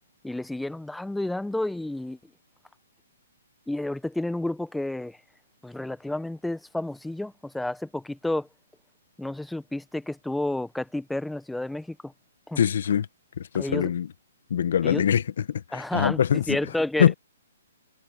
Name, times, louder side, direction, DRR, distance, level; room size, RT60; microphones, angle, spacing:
voice 1, 0.2-2.2 3.7-5.2 5.6-8.5 9.2-12.1 12.5-12.6 13.6-13.9 14.8-15.0 15.7-16.2 16.5-17.1, left 1 dB, 5° left, 1.1 m, -30 dB
voice 2, 12.6-13.1 13.4-14.1 14.5-16.6 17.0-17.1, left 9 dB, 65° left, 1.5 m, -23 dB
hypercardioid pair, 140°, 0 cm